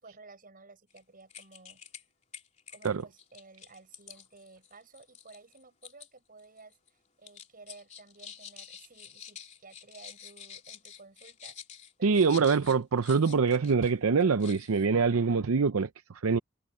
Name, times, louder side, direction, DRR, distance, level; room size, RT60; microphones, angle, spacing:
voice 1, 0.0-1.8 2.7-11.6 12.0-12.7, right 3 dB, 40° right, 6.9 m, -54 dB
sound 1, 0.9-1.0 1.3-2.0 2.3-6.1 6.4-6.9 7.2-13.9 14.2-14.8, left 7 dB, 35° left, 2.9 m, -48 dB
voice 2, 12.0-16.4, right 5 dB, 75° right, 0.6 m, -25 dB
head